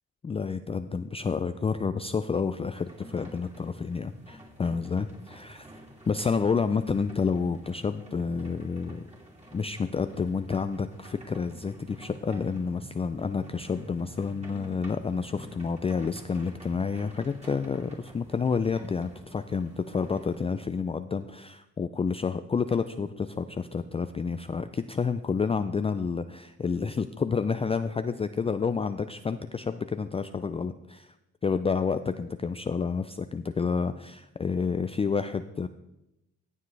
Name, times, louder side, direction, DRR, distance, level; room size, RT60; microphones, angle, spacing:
voice 1, 0.2-5.7 6.1-9.1 9.5-31.1 31.4-35.7, left 5 dB, 20° left, 10 dB, 0.4 m, -29 dB
sound 1, 2.7-20.4, right 1 dB, 20° right, 2.9 m, -50 dB
14.5 x 7.4 x 3.3 m, 0.90 s
cardioid pair, 90°, 30 cm